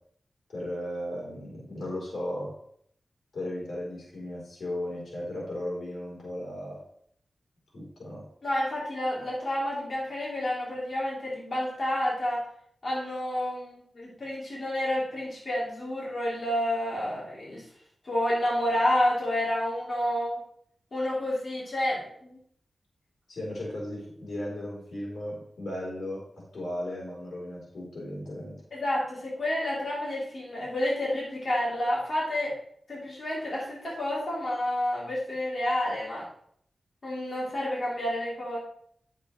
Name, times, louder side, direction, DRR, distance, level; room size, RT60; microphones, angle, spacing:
voice 1, 0.5-2.5 3.3-6.8 7.7-8.2 23.3-26.2 26.5-28.6, left 1 dB, 90° left, -4 dB, 4.0 m, -36 dB
voice 2, 8.4-12.5 12.8-17.6 18.0-20.4 20.9-22.4 28.7-32.5 32.9-36.3 37.0-38.6, left 1 dB, 50° left, -6 dB, 3.5 m, -29 dB
10.0 x 8.1 x 3.3 m, 0.65 s
wide cardioid pair, 115°, 0 cm